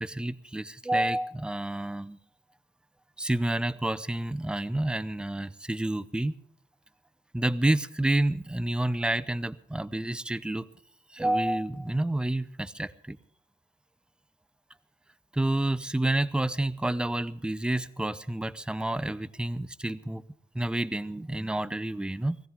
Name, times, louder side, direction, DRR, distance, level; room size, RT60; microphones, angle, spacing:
voice 1, 0.0-2.2 3.2-6.3 7.3-10.7 11.1-13.2 15.3-20.2 20.5-22.4, right 1 dB, 5° right, 15 dB, 0.6 m, -29 dB
20.5 x 15.0 x 3.6 m, 0.68 s
cardioid pair, 95°, 15 cm